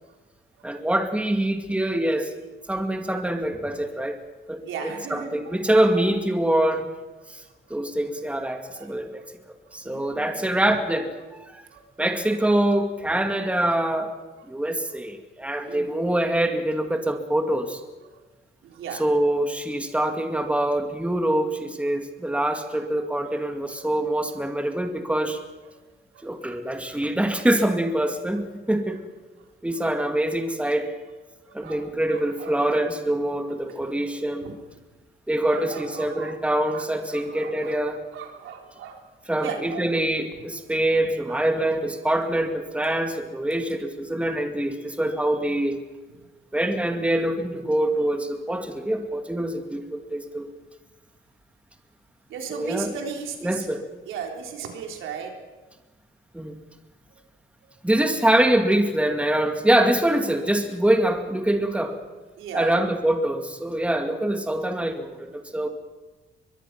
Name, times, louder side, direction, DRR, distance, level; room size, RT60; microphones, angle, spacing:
voice 1, 0.6-2.3 2.7-4.2 4.5-6.9 7.3-7.4 7.7-9.2 9.7-11.6 12.0-17.8 19.0-25.4 26.2-29.0 29.6-30.9 31.5-34.5 35.3-38.0 39.3-45.8 46.5-50.5 52.5-52.9 53.4-53.8 56.3-56.6 57.8-62.0 62.5-65.7, right 1 dB, 5° right, 5 dB, 2.2 m, -24 dB
voice 2, 4.6-6.1 7.2-7.8 8.7-8.9 9.2-9.3 9.6-10.8 11.2-11.3 11.7-11.9 12.3-12.4 13.2-13.4 14.4-14.5 14.9-15.0 15.4-16.1 17.0-17.1 17.5-17.6 18.0-18.2 18.6-19.0 21.8-22.0 22.3-22.5 23.2-23.4 23.8-23.9 24.3-24.4 25.6-25.8 26.1-26.3 26.6-26.8 28.9-29.0 29.4-29.5 29.7-29.9 31.4-32.6 33.7-34.1 34.4-34.5 35.4-36.4 36.7-37.8 38.1-39.0 39.3-39.9 41.3-41.4 50.0-50.1 52.3-53.7 54.1-55.6 57.1-57.2 57.6-57.7 62.4-62.9 64.6-64.7, right 7 dB, 85° right, 2 dB, 3.7 m, -38 dB
23.0 x 22.0 x 6.0 m, 1.2 s
cardioid pair, 90°, 20 cm